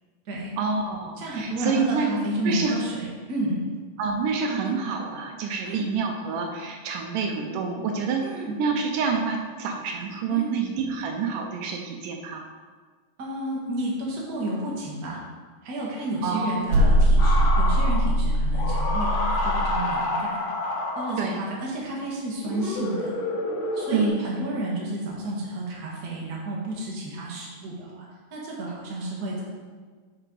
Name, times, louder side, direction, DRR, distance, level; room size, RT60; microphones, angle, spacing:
voice 1, 0.6-2.1 2.4-2.8 4.0-12.5 16.2-16.7 21.2-21.4 23.9-24.2, right 5 dB, 80° right, 3 dB, 2.2 m, -27 dB
voice 2, 1.2-3.6 4.6-4.7 5.6-5.8 8.2-8.6 10.3-10.6 13.2-15.2 15.6-20.5 20.9-23.1 23.7-29.4, right 1 dB, 40° right, -4 dB, 1.6 m, -31 dB
sound 1, 16.7-19.8, equal, 55° right, 1.9 m, -21 dB
sound 2, 17.2-18.1 18.5-21.5 22.4-24.1, left 2 dB, 55° left, 1.5 m, -29 dB
9.2 x 5.6 x 3.9 m, 1.5 s
omnidirectional pair, 3.8 m